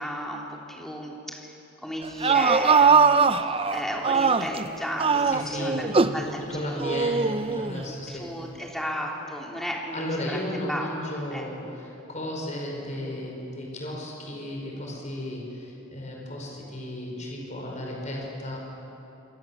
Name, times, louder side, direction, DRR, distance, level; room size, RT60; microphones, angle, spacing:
voice 1, 0.0-1.5 1.8-6.9 7.8-11.4, equal, ahead, -2 dB, 3.4 m, -34 dB
sound 1, 2.0-4.7 5.0-6.2 6.8-7.8, right 5 dB, 30° right, 0.6 m, -21 dB
voice 2, 5.3-8.3 9.9-18.6, left 1 dB, 40° left, -1 dB, 5.2 m, -34 dB
27.0 x 24.5 x 7.2 m, 3.0 s
head